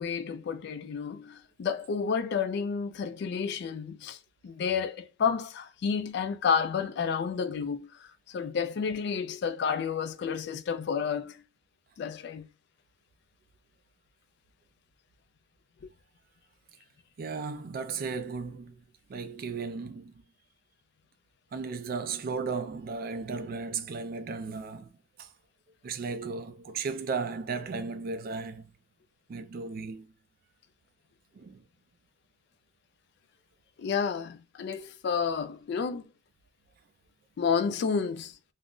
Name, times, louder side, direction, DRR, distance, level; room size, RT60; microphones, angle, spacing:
voice 1, 0.0-4.2 4.4-11.4 12.0-12.5 33.8-36.0 37.4-38.4, left 6 dB, 55° left, 0.3 m, -30 dB
voice 2, 17.2-18.8 19.1-20.2 21.5-24.9 25.2-25.3 25.8-28.7 29.3-30.1 31.3-31.6, right 4 dB, 50° right, 0.3 m, -35 dB
2.4 x 2.1 x 3.6 m
head